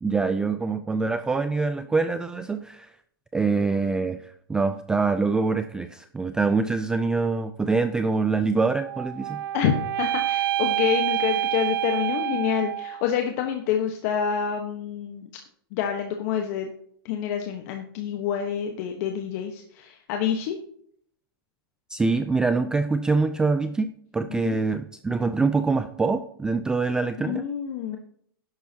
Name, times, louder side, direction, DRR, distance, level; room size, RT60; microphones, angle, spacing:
voice 1, 0.0-2.9 3.3-9.4 21.9-27.4, right 4 dB, 5° right, 10 dB, 0.3 m, -25 dB
sound 1, 8.8-13.1, right 12 dB, 65° right, 0.5 m, -27 dB
voice 2, 9.5-15.3 15.7-16.7 17.0-20.6 24.4-24.6 27.3-28.0, left 8 dB, 45° left, 4 dB, 1.2 m, -27 dB
12.5 x 10.5 x 2.8 m, 0.65 s
supercardioid pair, 155°, 12 cm